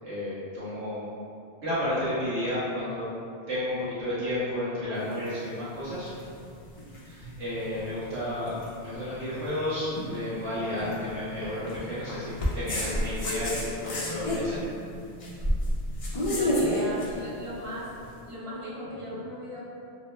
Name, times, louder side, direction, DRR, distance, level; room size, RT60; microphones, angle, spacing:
voice 1, 0.0-1.0 1.6-3.0 3.5-6.1 7.0-14.6, left 1 dB, 90° right, -11 dB, 1.1 m, -32 dB
sound 1, 5.0-18.1, equal, 45° left, 0.4 m, -32 dB
voice 2, 16.3-19.6, equal, 35° right, -8 dB, 0.6 m, -37 dB
2.9 x 2.1 x 3.0 m, 2.5 s
omnidirectional pair, 1.1 m